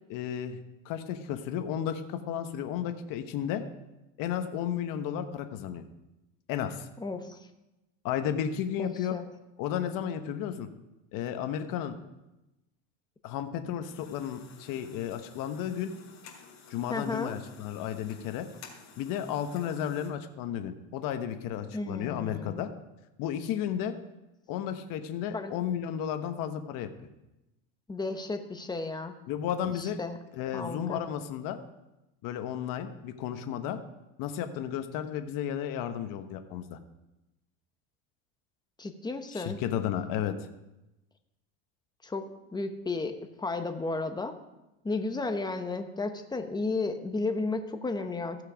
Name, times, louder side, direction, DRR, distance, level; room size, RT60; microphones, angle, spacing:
voice 1, 0.1-3.6 4.2-5.8 6.5-6.9 8.0-9.2 9.6-10.7 11.1-12.0 13.2-15.9 16.7-18.5 19.0-22.7 23.2-23.9 24.5-26.9 29.3-30.0 30.3-31.6 32.2-33.8 34.2-36.8 39.3-40.4, left 9 dB, 60° left, 8 dB, 1.1 m, -33 dB
voice 2, 7.0-7.4 8.8-9.2 16.9-17.3 21.7-22.6 25.3-25.5 27.9-29.2 29.8-30.2 30.5-31.0 38.8-39.6 42.0-44.3 44.8-48.4, left 3 dB, 10° left, 7 dB, 1.0 m, -33 dB
sound 1, 13.8-20.1, left 5 dB, 45° left, 2.8 m, -52 dB
15.0 x 6.5 x 5.0 m, 0.96 s
supercardioid pair, 120°, 37 cm